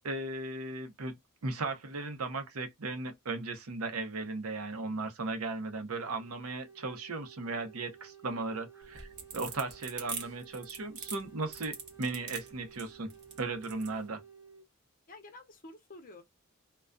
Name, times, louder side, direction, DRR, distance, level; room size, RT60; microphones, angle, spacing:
voice 1, 0.0-1.1 1.4-13.1 13.4-14.2, right 3 dB, 85° right, 0.7 m, -36 dB
Wind instrument woodwind instrument, 6.0-14.7, right 7 dB, 10° right, 0.6 m, -54 dB
sound 1, 8.8-13.9, right 5 dB, 50° right, 0.9 m, -42 dB
voice 2, 15.1-16.2, left 2 dB, 40° left, 0.6 m, -51 dB
2.2 x 2.2 x 2.4 m
head